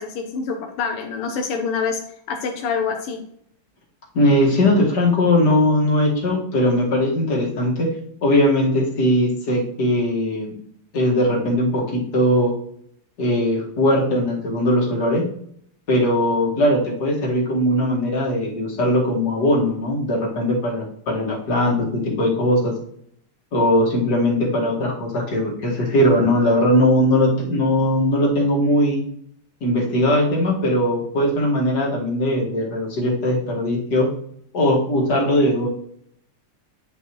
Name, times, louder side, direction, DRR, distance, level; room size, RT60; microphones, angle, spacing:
voice 1, 0.0-2.0 2.3-3.2, left 5 dB, 85° left, 3 dB, 1.8 m, -26 dB
voice 2, 4.1-7.9 8.2-10.6 10.9-12.5 13.2-15.3 15.9-22.8 23.5-29.0 29.6-34.1 34.5-35.7, left 1 dB, 50° left, -3 dB, 2.4 m, -19 dB
9.6 x 5.2 x 3.1 m, 0.67 s
omnidirectional pair, 2.4 m